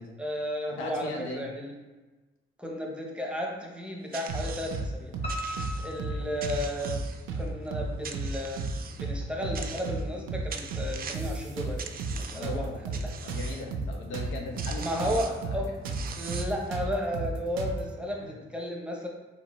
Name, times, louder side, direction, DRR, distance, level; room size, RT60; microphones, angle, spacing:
voice 1, 0.2-1.8 2.6-5.1 5.8-7.1 7.4-13.1 14.8-15.8 16.1-19.1, equal, 5° right, -1 dB, 0.9 m, -34 dB
voice 2, 0.8-1.5 6.1-6.2 12.3-12.8 13.2-15.6, left 2 dB, 75° left, 1 dB, 1.0 m, -38 dB
sound 1, 4.1-4.8 5.3-6.0 6.4-7.5 8.0-9.0 9.5-10.2 10.5-11.4 11.8-12.6 12.9-13.6 14.3-14.4 14.6-15.4 15.8-16.7, right 6 dB, 45° right, 0.5 m, -42 dB
sound 2, 4.3-4.9 5.1-5.3 5.6-6.6 6.9-7.0 7.3-8.3 8.6-8.7 9.0-10.0 10.3-10.4 10.7-12.2 12.4-15.2 15.4-15.6 15.9-17.9, right 4 dB, 90° right, 0.7 m, -33 dB
Piano, 5.2-7.2 7.6-8.4 8.8-8.9 9.3-9.4 9.7-9.8, equal, 30° left, 1.0 m, -39 dB
4.2 x 3.9 x 3.2 m, 1.2 s
cardioid pair, 90°, 20 cm